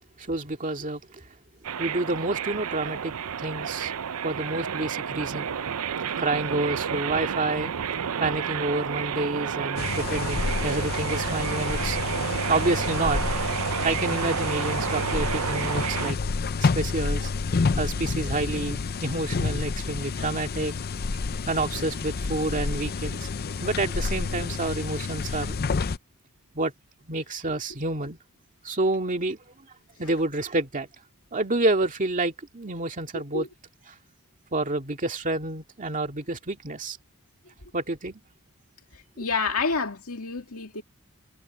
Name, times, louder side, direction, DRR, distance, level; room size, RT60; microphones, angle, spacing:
voice 1, 0.2-1.0 1.8-3.1 3.4-3.9 4.2-5.5 6.2-7.7 8.2-12.0 12.5-13.2 13.8-16.2 16.6-17.3 17.8-20.7 21.5-23.3 23.6-25.6 26.5-26.7 27.0-28.2 28.6-29.4 30.0-30.9 31.3-33.5 33.9-34.0 34.5-37.0 37.7-38.2 39.2-39.3, right 2 dB, 35° right, 2.1 m, -28 dB
sound 1, 1.6-16.1, right 7 dB, 75° right, 0.6 m, -30 dB
sound 2, 9.8-26.0, left 4 dB, 45° left, 0.6 m, -29 dB
voice 2, 39.2-40.8, left 4 dB, 75° left, 2.5 m, -28 dB
head